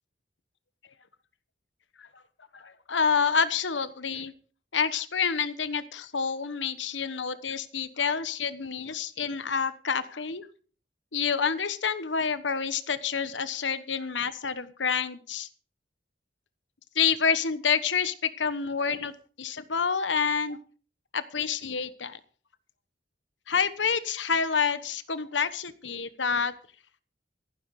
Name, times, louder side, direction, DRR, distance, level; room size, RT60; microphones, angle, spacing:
voice 1, 2.5-4.3 4.7-10.5 11.1-15.5 16.9-19.1 19.4-20.6 21.1-22.2 23.5-26.5, left 6 dB, 85° left, 13 dB, 1.2 m, -28 dB
14.5 x 12.0 x 4.8 m, 0.40 s
head